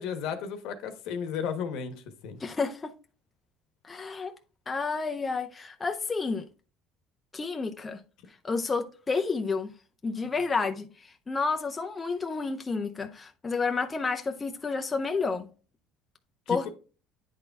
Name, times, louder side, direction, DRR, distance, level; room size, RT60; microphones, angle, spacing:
voice 1, 0.0-2.4 16.5-16.7, left 7 dB, 65° left, 1.1 m, -34 dB
voice 2, 2.4-2.9 3.8-4.3 4.7-6.5 7.3-8.0 8.4-9.7 10.0-15.5 16.5-16.7, left 4 dB, 20° left, 0.6 m, -30 dB
9.4 x 3.9 x 3.5 m
cardioid pair, 130°, 0 cm